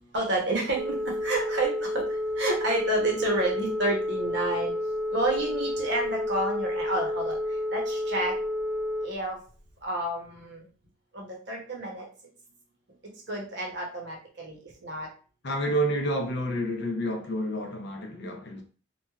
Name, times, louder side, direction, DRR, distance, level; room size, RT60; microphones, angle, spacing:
voice 1, 0.1-4.7 5.1-7.4 7.7-8.3 9.0-9.4 9.8-10.6 11.1-12.1 13.3-15.1, right 2 dB, 55° right, 0.8 m, -30 dB
Telephone, 0.8-9.1, left 1 dB, 90° right, 0.4 m, -30 dB
voice 2, 15.4-18.6, right 1 dB, 55° left, 0.5 m, -29 dB
3.0 x 2.2 x 2.3 m
head